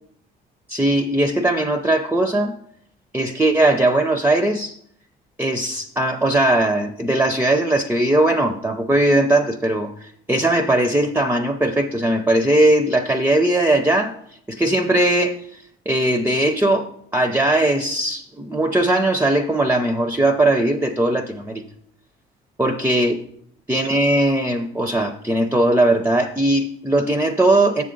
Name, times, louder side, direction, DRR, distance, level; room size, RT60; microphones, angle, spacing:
voice 1, 0.7-2.5 3.1-4.8 5.4-14.1 14.5-21.6 22.6-23.2 23.7-27.8, right 1 dB, 10° right, 7 dB, 0.6 m, -19 dB
7.0 x 6.8 x 3.9 m, 0.68 s
cardioid pair, 90°, 19 cm